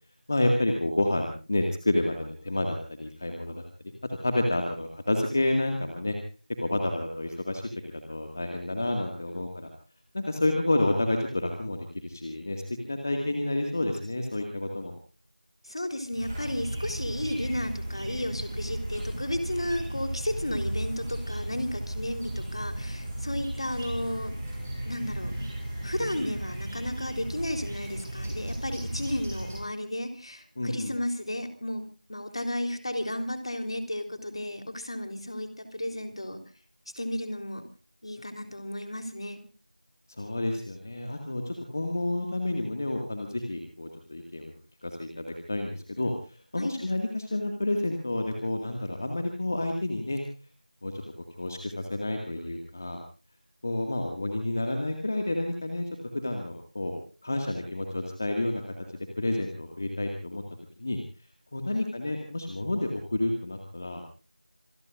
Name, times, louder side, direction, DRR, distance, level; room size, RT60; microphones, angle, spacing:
voice 1, 0.3-3.6 4.0-6.2 6.6-7.6 7.9-9.7 10.1-14.9 30.6-30.9 40.2-44.5 44.8-50.2 50.8-51.0 51.4-53.0 53.6-55.8 56.1-58.6 58.9-60.4 60.8-61.0 61.5-64.0, left 1 dB, 20° left, 4 dB, 1.9 m, -29 dB
voice 2, 15.6-24.4 24.9-25.5 25.8-36.4 37.0-37.6 38.0-39.4 46.6-46.7 61.8-61.9, left 1 dB, 40° left, 7 dB, 3.7 m, -33 dB
sound 1, 16.1-29.6, right 1 dB, 15° right, 6.7 m, -35 dB
27.0 x 20.0 x 2.5 m, 0.37 s
figure-of-eight pair, 175°, 4 cm